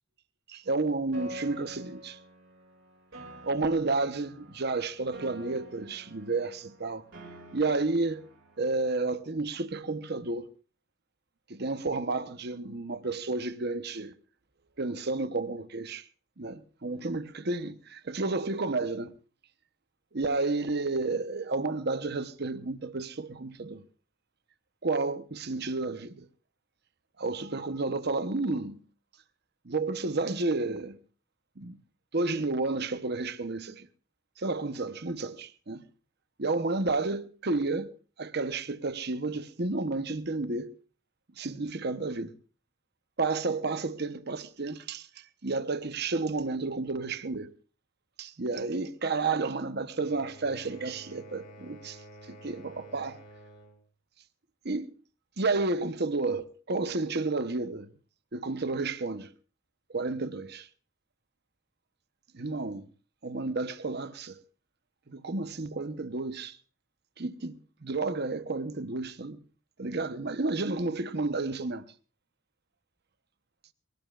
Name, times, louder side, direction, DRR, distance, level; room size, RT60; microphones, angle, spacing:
voice 1, 0.5-2.2 3.4-7.0 7.5-8.3 8.6-10.4 11.5-14.1 14.8-16.0 16.4-19.1 20.1-23.8 24.8-26.3 27.2-28.8 29.6-31.0 31.6-31.8 32.1-33.9 34.4-35.8 36.4-37.9 38.2-40.7 41.4-42.3 43.2-45.1 45.4-47.5 48.2-52.0 52.3-53.2 54.6-54.9 55.4-57.9 58.3-59.3 59.9-60.7 62.3-62.9 63.2-64.4 65.1-66.6 67.2-69.4 69.8-71.9, right 3 dB, 55° right, 1.0 m, -31 dB
Piano, 1.1-9.1, right 1 dB, 75° right, 2.7 m, -48 dB
sound 1, 49.9-53.8, right 1 dB, 60° left, 7.5 m, -50 dB
22.0 x 18.0 x 2.5 m
head